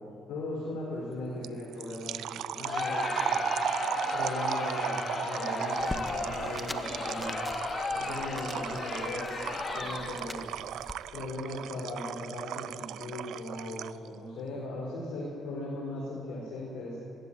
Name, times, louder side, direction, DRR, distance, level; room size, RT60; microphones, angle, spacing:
voice 1, 0.0-3.4 4.1-7.5 7.9-9.4 9.7-10.5 11.1-17.0, left 1 dB, 85° left, -6 dB, 5.2 m, -38 dB
sound 1, 1.4-14.1, right 12 dB, 80° right, 0.5 m, -36 dB
Crowd, 2.6-10.4, left 3 dB, 40° left, 2.2 m, -35 dB
sound 2, 5.8-11.0, left 2 dB, 15° left, 1.3 m, -44 dB
22.0 x 16.0 x 9.3 m, 2.6 s
cardioid pair, 90°, 0 cm